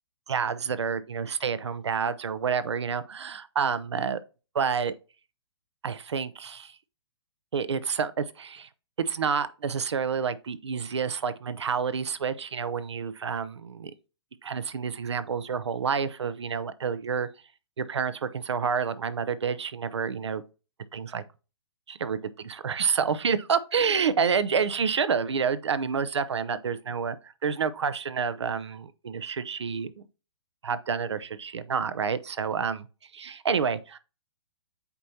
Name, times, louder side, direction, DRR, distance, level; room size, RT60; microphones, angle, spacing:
voice 1, 0.3-4.2 4.5-4.9 5.8-6.8 7.5-8.7 9.0-13.9 14.4-17.3 17.8-20.4 20.9-21.2 21.9-30.1 30.6-32.9 33.1-34.0, right 6 dB, 75° right, 0.7 m, -29 dB
8.2 x 4.4 x 2.8 m
hypercardioid pair, 125°, 14 cm